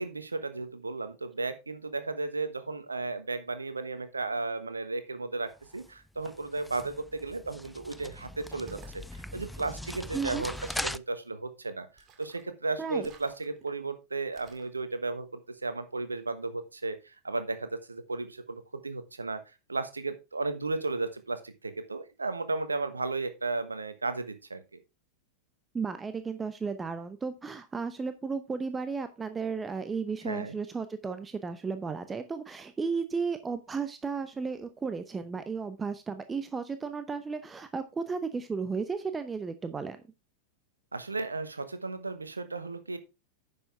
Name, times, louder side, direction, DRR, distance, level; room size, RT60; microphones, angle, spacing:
voice 1, 0.0-19.4 19.7-24.6 30.2-30.6 40.9-43.0, right 3 dB, 80° right, 11 dB, 1.3 m, -34 dB
sound 1, 5.5-11.0, left 1 dB, 5° left, 0.4 m, -40 dB
sound 2, 8.6-9.0 10.5-10.9 12.0-12.5 13.0-13.7 14.3-14.7, right 6 dB, 30° right, 2.3 m, -54 dB
voice 2, 10.1-10.4 12.8-13.1 25.7-40.0, right 5 dB, 15° right, 10 dB, 0.8 m, -34 dB
10.0 x 7.0 x 3.5 m, 0.26 s
figure-of-eight pair, 90°, 0 cm